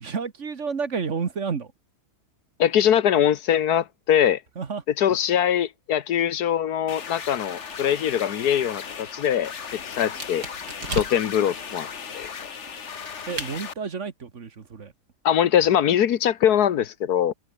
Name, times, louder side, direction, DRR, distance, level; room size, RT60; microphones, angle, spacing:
voice 1, 0.0-1.7 4.6-4.8 13.3-14.9, right 5 dB, 50° right, 1.7 m, -30 dB
voice 2, 2.6-4.4 5.0-9.5 10.0-10.4 10.9-11.9 12.1-12.3 15.2-17.3, left 10 dB, 75° left, 1.5 m, -22 dB
sound 1, 6.9-13.7, left 6 dB, 50° left, 1.6 m, -37 dB
sound 2, 8.7-11.4 12.2-13.5, right 3 dB, 85° right, 5.4 m, -37 dB
omnidirectional pair, 1.7 m